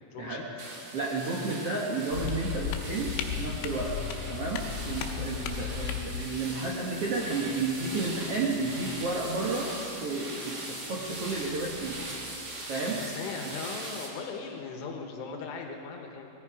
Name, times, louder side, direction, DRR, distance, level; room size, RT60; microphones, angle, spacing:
voice 1, 0.1-0.5 13.0-16.3, left 5 dB, 70° left, 3 dB, 3.1 m, -38 dB
sound 1, 0.6-14.1, right 2 dB, 55° right, 1.1 m, -41 dB
voice 2, 0.9-3.1 3.4-3.9 4.3-9.7 10.0-12.0 12.7-13.0 13.4-13.5, right 3 dB, 85° right, -3 dB, 1.3 m, -32 dB
sound 2, 2.1-6.2, left 8 dB, 90° left, 3.3 m, -34 dB
sound 3, 3.7-12.1, left 2 dB, 30° left, 3.4 m, -52 dB
19.5 x 15.0 x 4.9 m, 2.9 s
omnidirectional pair, 5.2 m